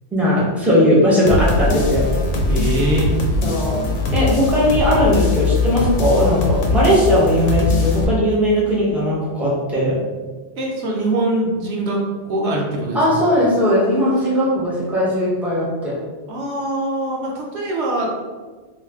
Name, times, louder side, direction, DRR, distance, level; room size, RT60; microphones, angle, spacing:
voice 1, 0.1-2.1 3.4-3.8 4.1-10.0 12.9-16.0, equal, ahead, -7 dB, 0.7 m, -18 dB
sound 1, 1.3-8.0, left 3 dB, 80° left, 0.9 m, -20 dB
voice 2, 2.5-3.1 10.6-13.0 14.2-14.3 16.3-18.1, right 1 dB, 70° right, -2 dB, 0.9 m, -22 dB
2.4 x 2.4 x 3.4 m, 1.4 s
omnidirectional pair, 1.2 m